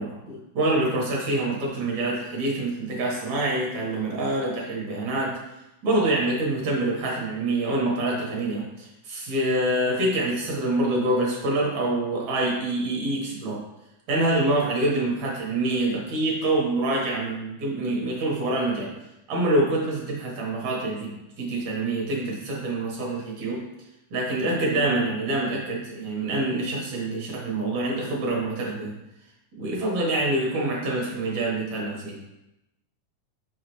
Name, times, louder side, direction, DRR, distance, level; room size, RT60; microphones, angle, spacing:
voice 1, 0.0-5.4 5.8-13.6 14.1-18.9 19.3-23.7 24.1-29.0 29.6-32.2, right 2 dB, 60° right, -3 dB, 2.6 m, -26 dB
6.6 x 5.9 x 3.1 m, 0.90 s
omnidirectional pair, 3.8 m